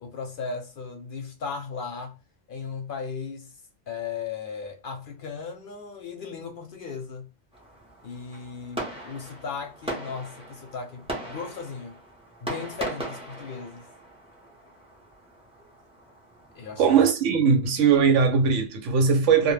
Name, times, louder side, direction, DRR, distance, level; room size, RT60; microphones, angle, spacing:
voice 1, 0.0-2.2 2.5-3.5 3.9-7.3 8.0-12.0 12.4-13.9 16.5-16.9, left 5 dB, 60° left, 0.6 m, -36 dB
Fireworks, 7.5-16.9, right 1 dB, 10° right, 0.4 m, -39 dB
voice 2, 16.8-19.5, right 6 dB, 90° right, 1.0 m, -20 dB
2.1 x 2.1 x 3.1 m
omnidirectional pair, 1.2 m